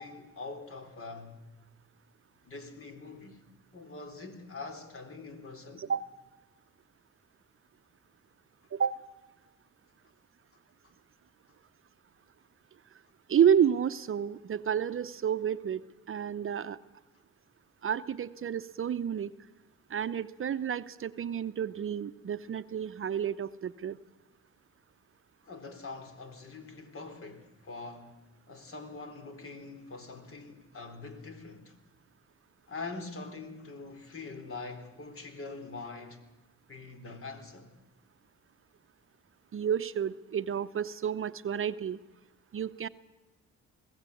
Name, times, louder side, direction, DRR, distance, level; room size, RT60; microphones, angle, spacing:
voice 1, 0.0-1.4 2.5-3.4 3.7-5.9 10.8-10.9 25.4-31.8 32.7-36.2 36.7-37.7, left 3 dB, 45° left, 3.8 m, -44 dB
voice 2, 13.3-15.8 16.1-16.8 17.8-19.3 19.9-24.0 39.5-42.0 42.5-42.9, right 8 dB, 45° right, 0.8 m, -30 dB
21.5 x 16.5 x 8.5 m
cardioid pair, 90°, 30 cm